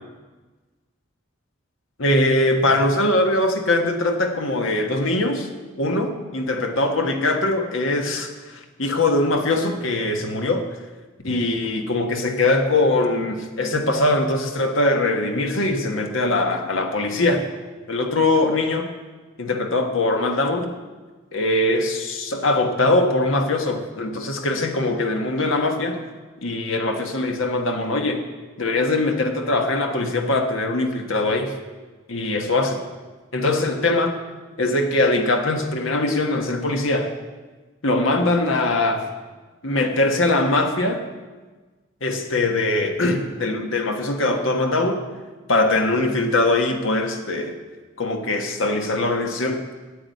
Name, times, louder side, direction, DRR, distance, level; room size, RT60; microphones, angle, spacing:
voice 1, 2.0-5.5 5.8-10.7 11.2-17.5 17.9-18.9 19.4-20.7 21.3-26.0 26.4-28.2 28.6-31.6 32.1-32.8 33.3-34.2 34.6-37.1 37.8-39.0 39.6-41.0 42.0-45.0 45.5-47.6 48.0-49.6, left 2 dB, 80° left, 4 dB, 1.5 m, -22 dB
9.9 x 8.1 x 9.2 m, 1.3 s
head